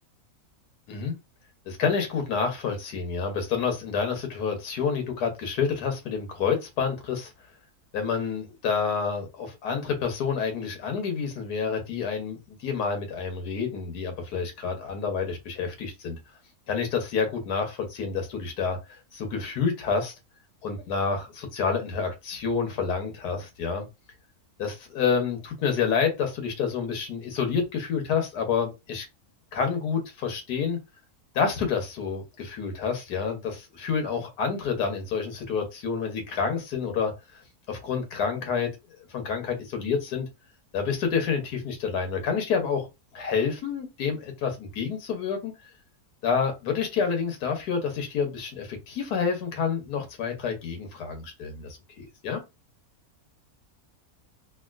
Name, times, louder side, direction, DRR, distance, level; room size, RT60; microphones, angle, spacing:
voice 1, 1.7-7.3 7.9-16.2 16.7-18.8 19.1-20.1 20.6-23.9 24.6-29.1 29.5-30.8 31.3-37.1 37.7-38.7 39.1-40.3 40.7-42.9 43.1-45.5 46.2-51.7 52.2-52.4, left 6 dB, 85° left, 1.4 m, -28 dB
3.5 x 2.4 x 2.4 m
omnidirectional pair, 1.6 m